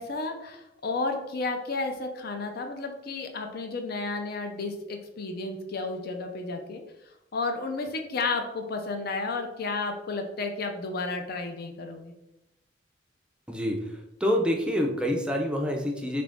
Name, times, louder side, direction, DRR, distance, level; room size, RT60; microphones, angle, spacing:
voice 1, 0.0-6.8 7.3-12.1, left 3 dB, 55° left, 4 dB, 0.5 m, -32 dB
voice 2, 13.5-13.8 14.2-16.2, equal, 5° right, 1 dB, 0.5 m, -26 dB
3.9 x 2.5 x 3.4 m, 0.89 s
head